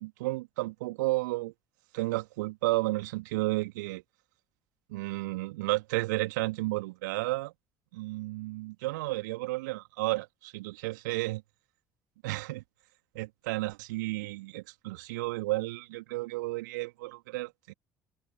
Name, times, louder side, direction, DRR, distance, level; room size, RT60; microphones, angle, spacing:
voice 1, 0.0-1.5 1.9-4.0 4.9-7.5 7.9-11.4 12.2-12.6 13.1-17.7, right 20 dB, 70° right, 2.4 m, -32 dB
figure-of-eight pair, 55°, 10 cm